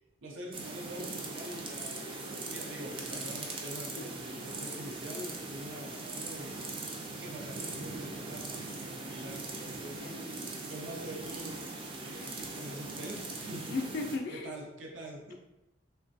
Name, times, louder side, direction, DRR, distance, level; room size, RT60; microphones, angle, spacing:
voice 1, 0.2-6.6 7.2-10.0 10.7-11.6 12.0-13.8 14.3-15.2, right 1 dB, 85° right, 0 dB, 0.6 m, -45 dB
sound 1, 0.5-14.2, right 3 dB, 30° right, 0.4 m, -40 dB
voice 2, 9.8-10.3 13.7-14.5, left 3 dB, 60° left, 4 dB, 0.4 m, -37 dB
3.1 x 2.2 x 2.5 m, 0.91 s
head